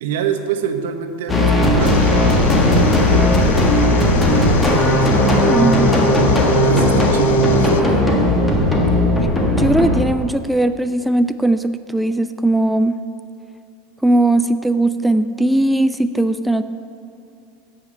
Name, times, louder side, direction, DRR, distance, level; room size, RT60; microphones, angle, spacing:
voice 1, 0.0-5.1 6.6-8.1, right 7 dB, 80° right, 7 dB, 1.1 m, -26 dB
sound 1, 1.3-10.0, left 1 dB, 15° left, 1.4 m, -16 dB
sound 2, 1.8-7.8, left 9 dB, 80° left, 0.6 m, -23 dB
voice 2, 5.4-6.0 9.6-13.0 14.0-16.6, right 1 dB, 5° right, 9 dB, 0.3 m, -18 dB
16.0 x 5.7 x 6.6 m, 2.5 s
supercardioid pair, 150°, 0 cm